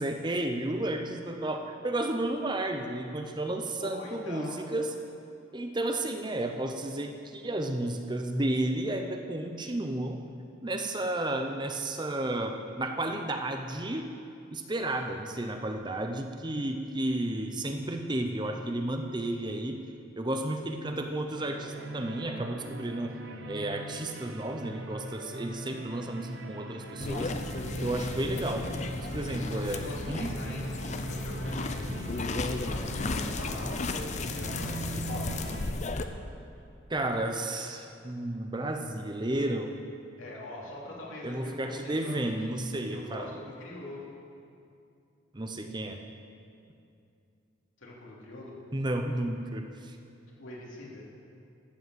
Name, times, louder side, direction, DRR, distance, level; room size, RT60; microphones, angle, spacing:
voice 1, 0.0-4.9 5.5-10.2 10.6-14.1 14.5-19.8 20.2-23.2 23.5-27.3 27.8-28.7 29.0-30.3 36.9-39.8 41.2-43.3 45.3-46.0 48.7-50.0, right 1 dB, 20° right, 5 dB, 0.7 m, -32 dB
voice 2, 3.8-4.6 19.3-19.6 23.2-23.6 29.3-30.7 31.1-31.9 32.5-35.7 40.2-42.6 42.9-44.1 47.8-48.5 50.4-51.0, left 1 dB, 80° left, -4 dB, 3.1 m, -44 dB
sound 1, 21.4-35.7, right 1 dB, 65° right, 0.9 m, -40 dB
sound 2, 27.0-36.0, left 2 dB, 35° left, 0.6 m, -34 dB
13.0 x 7.9 x 7.9 m, 2.5 s
head